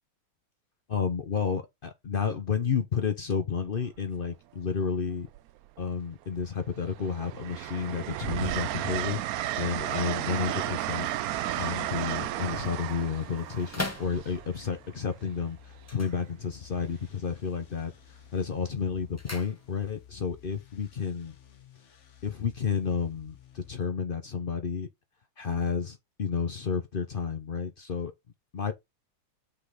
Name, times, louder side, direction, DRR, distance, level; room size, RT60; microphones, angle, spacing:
voice 1, 0.9-5.3 5.8-11.1 11.6-17.9 18.3-21.3 22.2-24.9 25.4-28.1 28.5-28.7, left 6 dB, 65° left, 0.5 m, -31 dB
Train, 3.7-4.0 5.3-6.0 6.4-15.2 16.8-17.0, right 13 dB, 80° right, 0.8 m, -33 dB
sound 1, 9.7-14.7 15.7-16.9 17.2-17.7 18.0-20.1 20.4-20.5, left 2 dB, 10° left, 0.9 m, -43 dB
sound 2, 11.3-23.8, left 10 dB, 45° left, 1.1 m, -54 dB
5.4 x 4.0 x 5.0 m
omnidirectional pair, 2.0 m